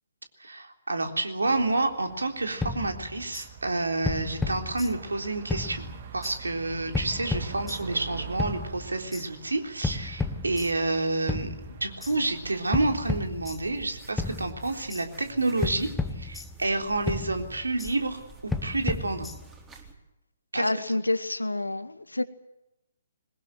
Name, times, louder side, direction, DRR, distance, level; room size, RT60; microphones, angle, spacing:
voice 1, 0.4-15.9 16.2-19.3 20.5-20.7, right 2 dB, 75° right, 5 dB, 3.6 m, -29 dB
sound 1, 1.4-12.6, right 7 dB, 40° right, 2.6 m, -45 dB
sound 2, 2.6-3.5 4.0-5.2 5.5-6.4 6.9-8.0 8.4-9.3 9.8-11.0 11.3-12.1 12.7-13.9 14.2-15.0 15.6-16.8 17.1-17.9 18.5-19.7, left 3 dB, 5° left, 1.3 m, -33 dB
sound 3, 12.0-19.9, right 4 dB, 15° right, 4.0 m, -49 dB
voice 2, 20.5-22.2, left 2 dB, 80° left, 11 dB, 1.9 m, -28 dB
22.5 x 20.0 x 8.9 m, 0.92 s
figure-of-eight pair, 130°, 0 cm